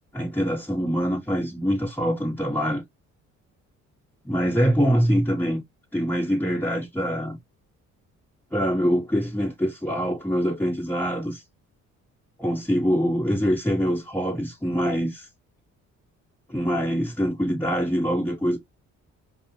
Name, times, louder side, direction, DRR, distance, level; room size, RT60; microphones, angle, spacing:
voice 1, 0.1-2.8 4.2-5.6 5.9-7.4 8.5-11.4 12.4-15.3 16.5-18.6, equal, 5° left, 2.4 m, -24 dB
5.1 x 2.9 x 3.2 m
cardioid pair, 90°, 30 cm